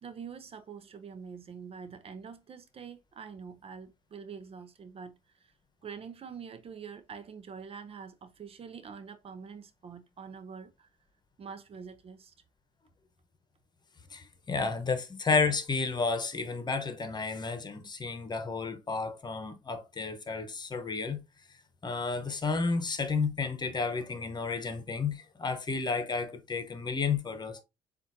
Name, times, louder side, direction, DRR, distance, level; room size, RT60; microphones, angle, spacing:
voice 1, 0.0-5.5 5.8-10.9 11.4-12.3, right 6 dB, 45° right, 0.7 m, -45 dB
voice 2, 14.1-21.2 21.8-27.6, left 4 dB, 30° left, 1.1 m, -31 dB
7.2 x 2.6 x 2.7 m
supercardioid pair, 70°, 13 cm